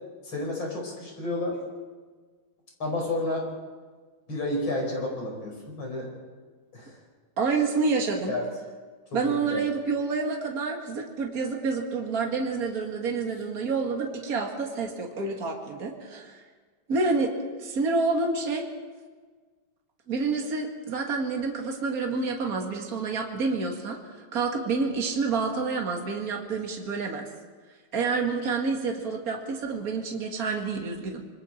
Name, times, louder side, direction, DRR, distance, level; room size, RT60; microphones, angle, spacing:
voice 1, 0.2-1.6 2.8-3.5 4.3-6.1 6.7-7.0 8.3-8.4 9.1-9.6, left 2 dB, 65° left, 0 dB, 5.8 m, -31 dB
voice 2, 7.4-8.3 9.1-16.4 16.9-17.3 17.6-18.7 20.1-24.0 24.3-27.2 27.9-31.2, right 4 dB, 45° right, 1 dB, 2.5 m, -28 dB
26.0 x 23.0 x 4.5 m, 1.5 s
omnidirectional pair, 2.3 m